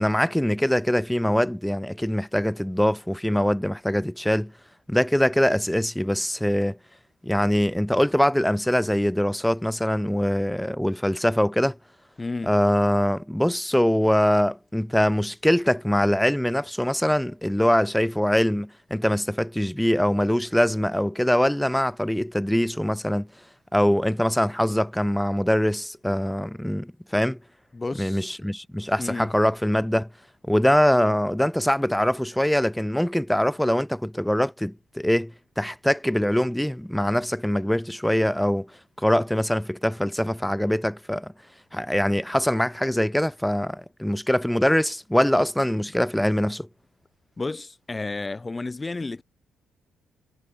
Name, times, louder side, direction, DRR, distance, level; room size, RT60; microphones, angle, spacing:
voice 1, 0.0-4.5 4.9-6.8 7.2-11.8 12.5-23.3 23.7-27.4 28.0-30.1 30.5-38.7 39.0-41.3 41.7-46.7, equal, 5° left, 0.7 m, -23 dB
voice 2, 12.2-12.5 27.7-28.5 29.0-29.3 47.4-49.2, left 3 dB, 20° left, 5.1 m, -32 dB
cardioid pair, 90°, 0 cm